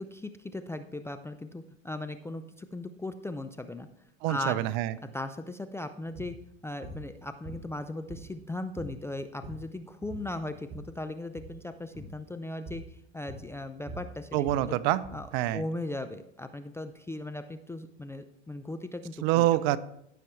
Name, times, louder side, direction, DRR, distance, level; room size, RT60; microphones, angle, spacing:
voice 1, 0.0-3.9 4.3-4.6 5.1-6.4 6.6-14.8 15.1-15.3 15.5-19.5, left 2 dB, 10° left, 8 dB, 0.4 m, -38 dB
voice 2, 4.2-4.9 14.3-15.0 15.3-15.6 19.2-19.8, right 15 dB, 55° right, 17 dB, 0.6 m, -26 dB
sound 1, 6.2-6.4 6.8-7.1 7.4-8.5 8.8-9.0 9.3-9.7 10.0-10.9 11.3-11.6 11.9-12.2 12.7-12.9 13.3-15.3, right 1 dB, 35° right, 2.6 m, -44 dB
15.0 x 5.8 x 3.2 m, 0.75 s
hypercardioid pair, 80°, 36 cm